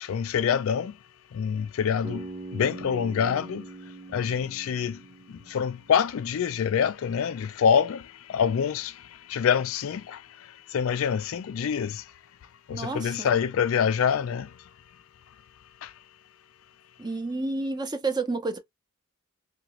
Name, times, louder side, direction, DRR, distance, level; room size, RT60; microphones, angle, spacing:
voice 1, 0.1-0.9 1.4-2.2 2.5-3.6 4.1-5.0 5.5-8.0 8.3-8.9 9.3-10.2 10.7-12.0 12.7-14.5, left 7 dB, 65° left, 0.3 m, -25 dB
Bass guitar, 2.0-6.1, right 2 dB, 35° right, 1.0 m, -42 dB
voice 2, 12.7-13.3 17.0-18.6, right 3 dB, 20° right, 0.5 m, -30 dB
2.7 x 2.5 x 3.0 m
head